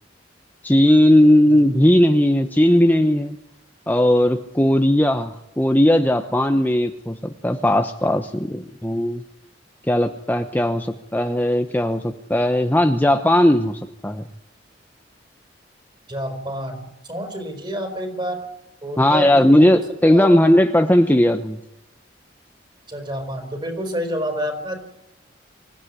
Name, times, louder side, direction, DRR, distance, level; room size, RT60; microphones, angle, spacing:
voice 1, 0.6-3.4 3.9-9.2 9.9-14.2 19.0-21.6, left 1 dB, 10° left, 6 dB, 1.0 m, -17 dB
voice 2, 16.1-18.5 18.8-20.3 22.9-24.8, equal, 25° right, 6 dB, 5.0 m, -29 dB
25.0 x 16.0 x 9.8 m, 0.88 s
head